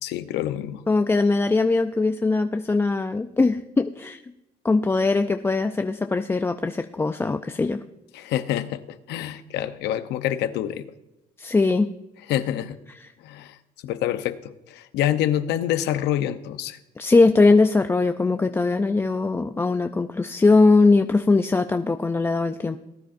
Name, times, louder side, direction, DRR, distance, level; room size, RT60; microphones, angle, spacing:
voice 1, 0.0-0.8 8.1-10.9 12.3-12.8 13.2-13.6 13.8-16.8, left 11 dB, 80° left, 11 dB, 0.8 m, -27 dB
voice 2, 0.9-4.2 4.6-7.8 11.4-11.9 13.0-13.1 17.0-22.8, left 3 dB, 15° left, 7 dB, 0.4 m, -20 dB
19.0 x 10.0 x 2.6 m, 0.91 s
cardioid pair, 110°, 17 cm